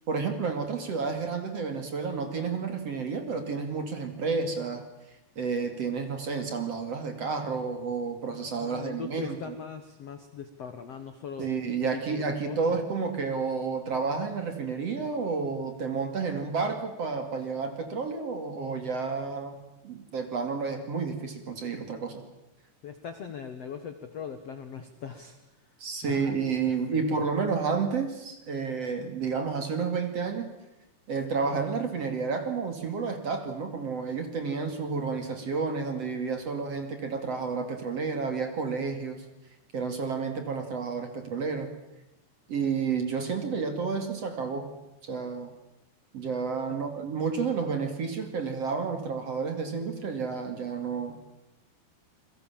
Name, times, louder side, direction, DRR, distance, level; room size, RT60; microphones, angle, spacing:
voice 1, 0.1-4.8 5.4-9.5 11.4-19.6 19.8-22.3 25.8-30.5 31.1-39.2 39.7-41.7 42.5-44.7 45.0-45.5 46.1-51.2, right 5 dB, 40° right, 6 dB, 2.8 m, -31 dB
voice 2, 8.6-11.5 11.9-12.6 22.8-25.4 26.0-26.3 26.7-27.2 46.7-46.8, left 7 dB, 75° left, 9 dB, 1.4 m, -40 dB
29.0 x 22.0 x 7.5 m, 0.91 s
omnidirectional pair, 5.3 m